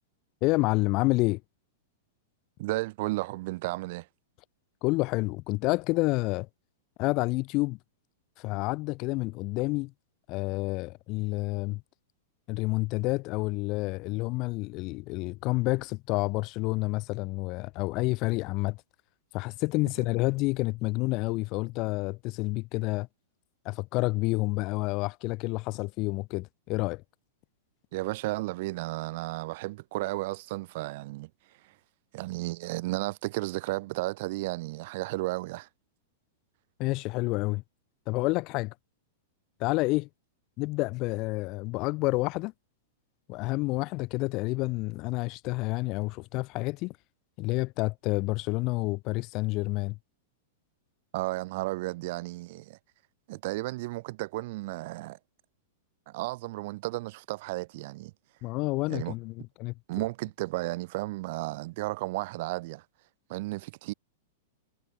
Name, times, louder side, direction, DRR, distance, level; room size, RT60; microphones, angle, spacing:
voice 1, 0.4-1.4 4.8-6.5 7.0-7.8 8.4-9.9 10.3-11.8 12.5-18.8 19.3-23.1 23.7-27.0 36.8-37.6 38.1-38.7 39.6-40.1 40.6-42.5 43.3-46.9 47.4-50.0 58.4-59.7, left 23 dB, 30° left, 0.4 m, -29 dB
voice 2, 2.6-4.1 27.9-31.3 32.1-35.7 51.1-52.8 53.3-55.2 56.1-58.1 58.9-59.1 59.9-62.8 63.3-63.9, right 20 dB, 40° right, 0.5 m, -33 dB
supercardioid pair, 175°, 0 cm